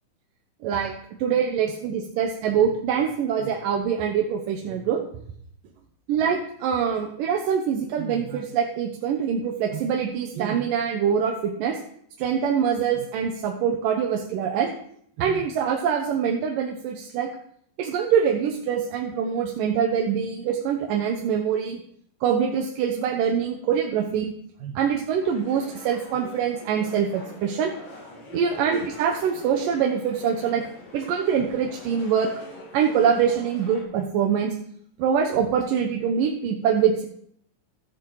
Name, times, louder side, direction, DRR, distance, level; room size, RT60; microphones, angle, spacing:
voice 1, 0.6-0.9 1.2-5.0 6.1-11.8 12.2-14.7 15.2-17.3 17.8-21.8 22.2-24.3 24.6-27.7 28.3-30.6 30.9-32.3 32.7-34.5 35.0-37.1, right 7 dB, 85° right, 2 dB, 2.7 m, -24 dB
sound 1, 25.2-33.8, left 2 dB, 90° left, 4.6 m, -44 dB
15.5 x 7.1 x 4.8 m, 0.66 s
omnidirectional pair, 3.8 m